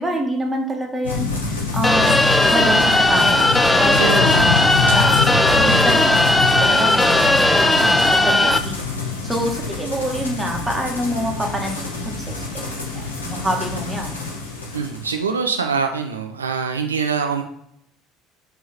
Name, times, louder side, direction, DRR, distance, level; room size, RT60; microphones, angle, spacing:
voice 1, 0.0-2.2 2.5-3.5 3.8-5.2 5.5-8.9 9.2-12.7 12.9-14.2, right 1 dB, 10° right, 2 dB, 1.9 m, -26 dB
sound 1, 1.0-15.2, left 4 dB, 85° left, 1.5 m, -26 dB
sound 2, 1.8-8.6, left 2 dB, 10° left, 0.6 m, -16 dB
voice 2, 4.0-4.6 5.6-6.0 14.7-17.4, right 5 dB, 85° right, 5 dB, 0.6 m, -24 dB
5.7 x 3.7 x 6.0 m, 0.71 s
figure-of-eight pair, 65°, 0 cm